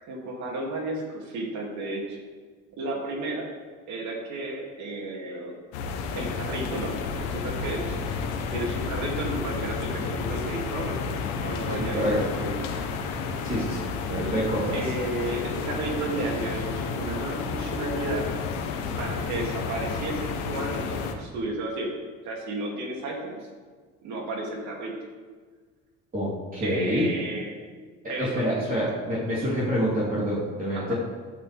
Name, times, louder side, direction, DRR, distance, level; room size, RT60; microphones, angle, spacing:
voice 1, 0.1-2.2 2.8-3.5 3.9-5.5 6.1-6.9 7.3-11.0 11.4-12.9 14.7-18.3 19.0-21.9 22.2-23.4 24.0-24.9 26.6-27.5 28.1-28.5 30.7-30.9, right 2 dB, 65° right, -1 dB, 3.0 m, -33 dB
sound 1, 5.7-21.1, left 5 dB, 90° left, 1.3 m, -31 dB
voice 2, 11.8-12.3 13.4-14.8 26.1-27.1 28.0-30.9, equal, 30° right, -8 dB, 3.7 m, -27 dB
12.0 x 12.0 x 3.6 m, 1.5 s
supercardioid pair, 85°, 31 cm